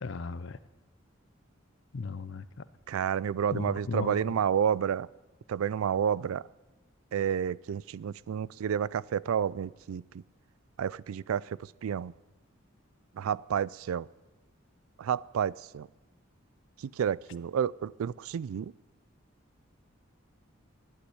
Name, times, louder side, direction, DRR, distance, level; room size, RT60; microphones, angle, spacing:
voice 1, 0.0-0.6 1.9-2.5 3.5-4.4, left 4 dB, 60° left, 0.5 m, -36 dB
voice 2, 2.9-5.1 5.5-6.4 7.1-10.0 10.8-12.1 13.2-14.1 15.0-15.9 17.0-18.7, right 8 dB, 90° right, 0.3 m, -30 dB
11.5 x 9.0 x 10.0 m
head